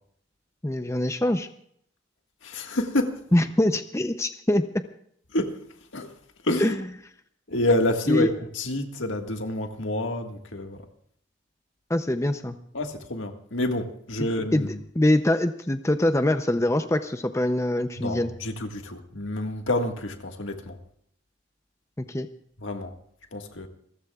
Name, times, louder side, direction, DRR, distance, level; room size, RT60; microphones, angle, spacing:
voice 1, 0.6-1.5 3.3-4.7 6.6-6.8 8.1-8.3 11.9-12.6 14.2-18.3 22.0-22.3, left 1 dB, 15° left, 0.6 m, -24 dB
voice 2, 2.4-3.2 5.3-5.6 5.9-6.1 6.4-6.8 7.5-10.9 12.7-14.7 18.0-20.8 22.6-22.9 23.3-23.7, left 1 dB, 80° left, 1.8 m, -28 dB
27.5 x 14.5 x 2.4 m
head